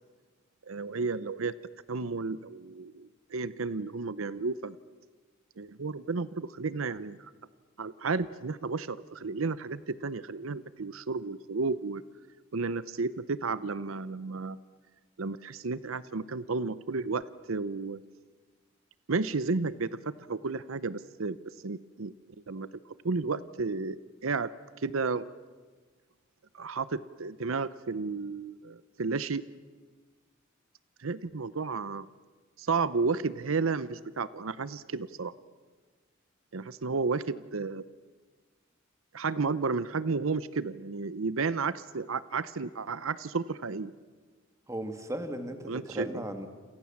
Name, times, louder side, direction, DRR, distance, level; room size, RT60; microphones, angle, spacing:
voice 1, 0.7-1.5 1.9-4.8 5.6-7.3 7.8-12.0 12.5-14.6 15.2-18.0 19.1-21.4 21.6-22.1 22.5-22.7 23.0-24.5 24.8-25.3 26.5-29.4 31.0-32.1 32.6-35.3 36.5-37.8 39.1-43.9 45.7-46.2, right 4 dB, 85° right, 16 dB, 0.8 m, -32 dB
voice 2, 44.7-46.5, right 1 dB, 15° right, 7 dB, 2.2 m, -36 dB
28.5 x 27.5 x 7.3 m, 1.4 s
head